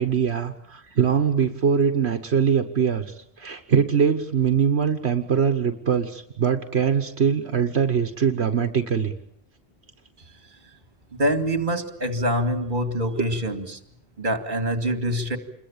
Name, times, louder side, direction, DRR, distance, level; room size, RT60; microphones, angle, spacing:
voice 1, 0.0-9.1, right 7 dB, 80° right, 8 dB, 1.6 m, -22 dB
voice 2, 11.2-13.8 14.2-15.4, equal, 50° right, 9 dB, 2.6 m, -25 dB
28.0 x 22.0 x 8.8 m, 0.69 s
omnidirectional pair, 1.1 m